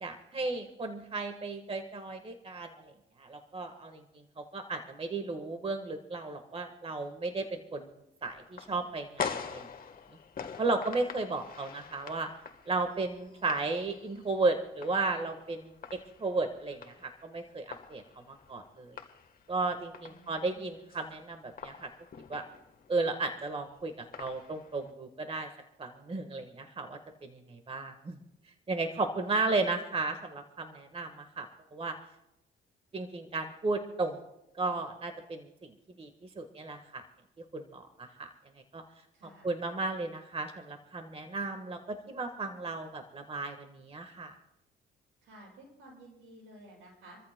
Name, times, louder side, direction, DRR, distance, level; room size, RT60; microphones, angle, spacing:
voice 1, 0.0-2.9 3.2-7.9 8.2-9.7 10.6-12.3 12.7-15.7 16.2-19.0 19.5-21.9 22.3-22.4 22.9-25.5 25.8-28.2 28.7-31.9 32.9-34.2 34.6-37.1 37.5-38.3 38.7-38.8 39.4-44.4, right 3 dB, 30° right, 7 dB, 1.4 m, -34 dB
sound 1, 8.2-24.9, left 6 dB, 45° left, 1.3 m, -45 dB
voice 2, 20.0-20.8 39.1-39.5 45.2-47.2, right 1 dB, 85° right, -3 dB, 7.2 m, -54 dB
28.5 x 14.0 x 2.2 m, 0.88 s
cardioid pair, 90°, 20 cm